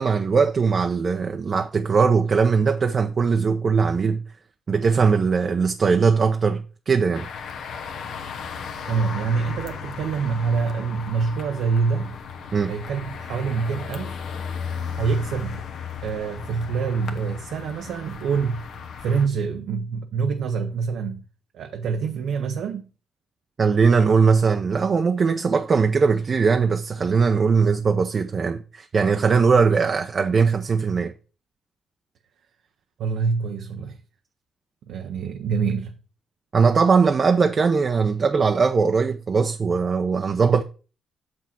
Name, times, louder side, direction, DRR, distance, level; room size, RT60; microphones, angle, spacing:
voice 1, 0.0-4.2 4.7-7.3 12.5-12.7 23.6-31.1 36.5-40.6, right 5 dB, 40° right, 0.6 m, -20 dB
sound 1, 7.1-19.3, left 6 dB, 75° left, 0.9 m, -35 dB
voice 2, 8.9-12.2 12.7-14.2 15.0-15.6 16.0-18.6 19.0-21.2 21.5-22.9 33.0-34.0 34.9-35.9, right 5 dB, 80° right, 0.7 m, -26 dB
7.1 x 6.1 x 4.4 m
cardioid pair, 110°, 0 cm